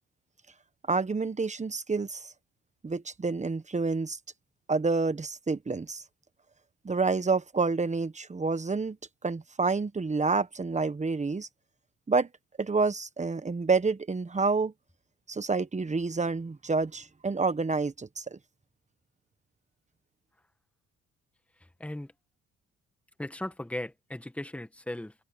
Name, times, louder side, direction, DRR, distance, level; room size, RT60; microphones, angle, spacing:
voice 1, 0.9-2.3 2.8-4.2 4.7-6.0 6.8-9.0 9.2-11.5 12.1-12.3 12.6-14.7 15.3-18.4, right 4 dB, 25° right, 1.3 m, -28 dB
voice 2, 21.8-22.1 23.2-25.1, left 1 dB, 5° left, 1.7 m, -37 dB
cardioid pair, 90°, 30 cm